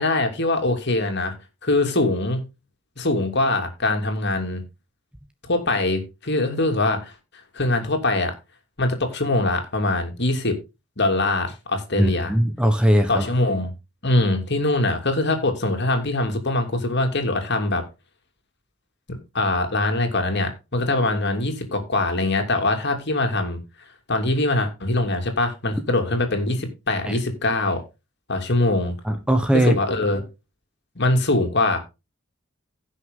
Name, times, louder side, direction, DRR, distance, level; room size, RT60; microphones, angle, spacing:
voice 1, 0.0-1.3 1.6-2.4 3.0-4.6 5.5-7.1 7.5-8.3 8.8-10.6 11.0-12.3 13.1-13.7 14.0-17.8 19.1-23.6 24.1-27.8 28.3-28.9 29.5-30.2 30.9-31.8, left 2 dB, 55° left, 2.9 m, -23 dB
voice 2, 11.9-13.3 27.1-27.2 29.0-29.8, right 1 dB, 5° right, 1.2 m, -20 dB
16.5 x 6.4 x 3.8 m
head